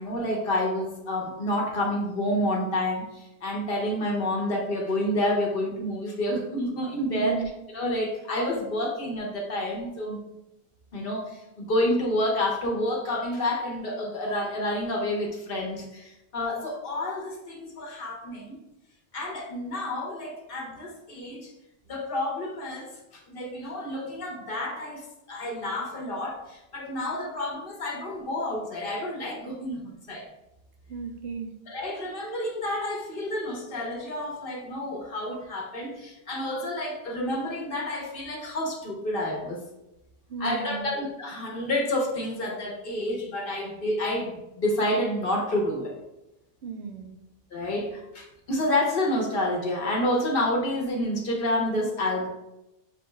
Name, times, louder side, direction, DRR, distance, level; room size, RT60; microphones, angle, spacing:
voice 1, 0.0-7.4 7.7-10.2 10.9-18.6 19.1-21.5 21.9-30.3 31.7-39.6 40.4-45.9 47.5-52.3, left 1 dB, 60° left, 0 dB, 1.1 m, -29 dB
voice 2, 7.1-7.5 30.9-31.5 40.3-40.9 46.6-47.2, right 5 dB, 85° right, 5 dB, 0.8 m, -34 dB
6.2 x 2.3 x 3.1 m, 0.91 s
omnidirectional pair, 1.0 m